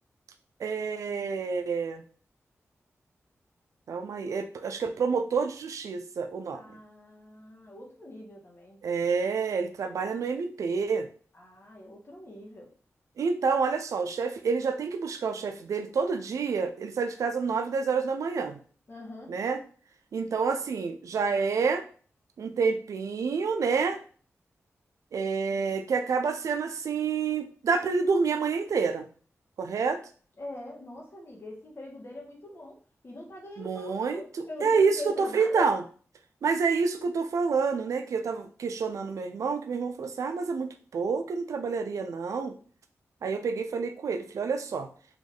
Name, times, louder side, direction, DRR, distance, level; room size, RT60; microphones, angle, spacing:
voice 1, 0.6-2.0 3.9-6.6 8.8-11.1 13.2-18.6 19.3-19.6 20.1-21.8 22.4-24.0 25.1-29.1 29.6-30.0 33.6-35.8 36.4-42.5 43.2-44.9, right 5 dB, 85° right, 8 dB, 0.5 m, -28 dB
voice 2, 6.5-8.8 11.3-12.7 18.9-19.3 30.4-32.8 33.0-35.7, left 1 dB, 45° left, -2 dB, 1.5 m, -43 dB
3.5 x 3.0 x 3.8 m, 0.42 s
cardioid pair, 75°, 5 cm